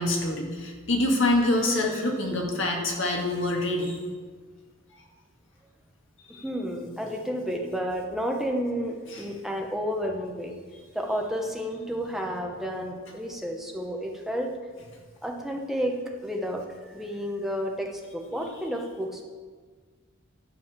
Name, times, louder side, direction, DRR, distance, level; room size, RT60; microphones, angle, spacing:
voice 1, 0.0-4.0 6.3-6.4 9.1-9.2, left 1 dB, 65° left, 1 dB, 2.0 m, -26 dB
voice 2, 6.4-10.5 10.9-14.5 15.2-15.9 16.2-19.2, equal, ahead, 1 dB, 1.1 m, -31 dB
12.0 x 5.7 x 7.3 m, 1.5 s
head